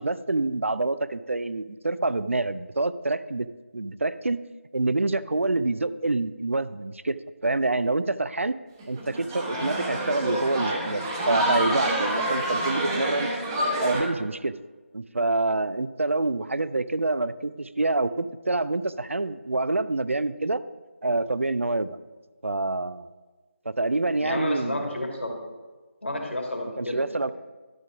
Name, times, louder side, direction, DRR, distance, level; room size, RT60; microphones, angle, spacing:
voice 1, 0.0-3.5 3.7-4.4 4.7-8.6 8.9-13.3 13.8-14.5 14.9-20.6 21.0-22.0 22.4-23.1 23.7-24.9 26.8-27.3, right 2 dB, 75° right, 15 dB, 0.4 m, -26 dB
sound 1, 8.8-14.0, right 1 dB, 15° right, 1.0 m, -27 dB
voice 2, 24.2-25.4 26.0-27.3, left 1 dB, 65° left, 1 dB, 2.1 m, -31 dB
11.5 x 5.2 x 4.9 m, 1.3 s
figure-of-eight pair, 160°, 7 cm